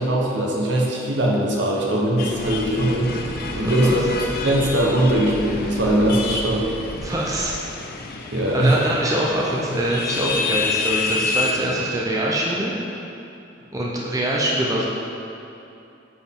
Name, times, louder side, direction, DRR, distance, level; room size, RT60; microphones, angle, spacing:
voice 1, 0.0-4.1 4.4-6.7 8.3-8.8, right 1 dB, 65° right, -3 dB, 1.1 m, -21 dB
sound 1, 2.2-11.9, left 4 dB, 50° left, 0.5 m, -29 dB
sound 2, 2.3-7.5, equal, 45° right, 0.8 m, -36 dB
voice 2, 3.4-4.0 6.9-7.5 8.5-12.7 13.7-14.9, right 1 dB, 20° right, -4 dB, 0.5 m, -24 dB
8.7 x 4.5 x 3.6 m, 2.8 s
head